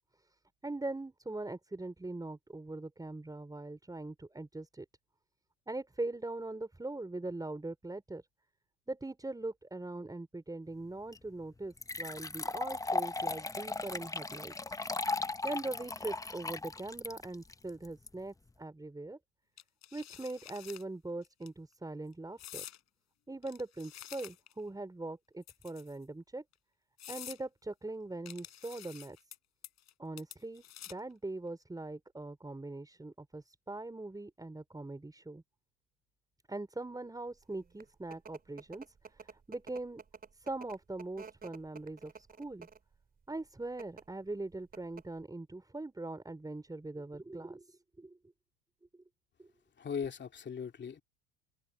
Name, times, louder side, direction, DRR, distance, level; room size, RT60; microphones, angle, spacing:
voice 1, 0.6-4.8 5.7-8.2 8.9-14.8 15.4-19.2 19.9-22.6 23.3-26.4 27.1-29.2 30.0-30.6 30.9-35.4 36.5-40.0 40.3-42.7 43.3-48.2 49.4-49.5, right 2 dB, 10° right, 4.4 m, -41 dB
sound 1, 11.1-11.2 11.8-18.1, left 3 dB, 10° left, 0.8 m, -37 dB
sound 2, 19.6-20.8 21.2-21.5 22.4-22.8 23.4-24.6 25.4-26.0 26.5-26.6 27.0-27.4 28.3-29.4 29.6-29.9 30.2-31.1, left 12 dB, 50° left, 6.0 m, -49 dB
sound 3, 37.5-42.9 43.6-44.0 44.4-44.5 44.7-45.2, right 5 dB, 25° right, 3.1 m, -51 dB
voice 2, 49.8-51.0, left 6 dB, 30° left, 2.8 m, -38 dB
open air
hypercardioid pair, 75°, 34 cm